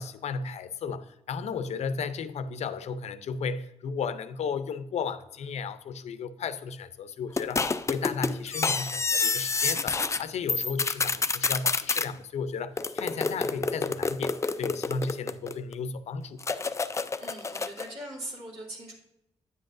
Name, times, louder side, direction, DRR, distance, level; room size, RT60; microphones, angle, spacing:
voice 1, 0.0-16.4, left 5 dB, 80° left, 0.6 m, -34 dB
sound 1, 7.4-10.2 10.5-12.1 12.8-15.7 16.4-17.9, left 4 dB, 25° left, 0.4 m, -28 dB
voice 2, 17.2-18.9, right 1 dB, 70° right, 2.8 m, -40 dB
9.5 x 7.6 x 2.5 m
cardioid pair, 100°, 11 cm